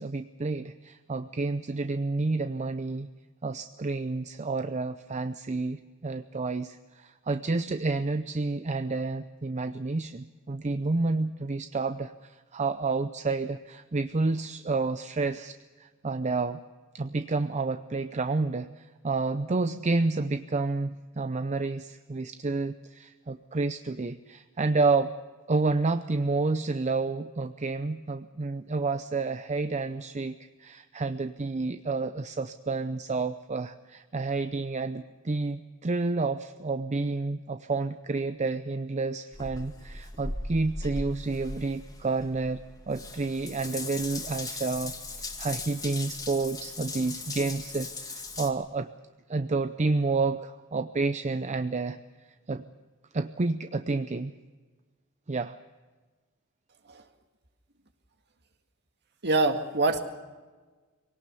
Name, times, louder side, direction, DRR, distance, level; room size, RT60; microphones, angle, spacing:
voice 1, 0.0-3.1 3.4-16.6 16.9-25.1 25.5-48.9 49.3-52.0 52.5-52.6 53.1-54.3 55.3-55.6, right 3 dB, 30° right, 10 dB, 0.6 m, -30 dB
Water tap faucet / Bathtub (filling or washing) / Drip, 39.3-48.5, left 2 dB, 15° left, 2.2 m, -38 dB
voice 2, 59.2-60.0, right 2 dB, 50° right, 6 dB, 2.0 m, -24 dB
23.5 x 18.0 x 6.9 m, 1.3 s
head